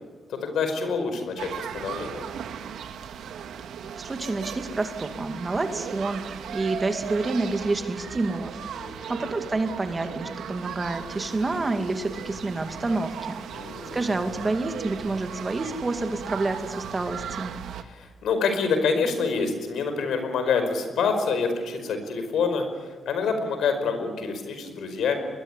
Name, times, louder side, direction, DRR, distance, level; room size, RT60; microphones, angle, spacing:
voice 1, 0.3-2.2 8.8-9.1 13.5-14.0 17.8-25.2, left 5 dB, 80° left, 7 dB, 5.2 m, -27 dB
sound 1, 1.4-17.8, right 8 dB, 80° right, 1.8 m, -37 dB
voice 2, 3.8-8.5 9.1-13.4 13.9-17.5, right 2 dB, 25° right, 6 dB, 2.3 m, -28 dB
22.5 x 21.0 x 9.9 m, 1.4 s
cardioid pair, 110°, 0 cm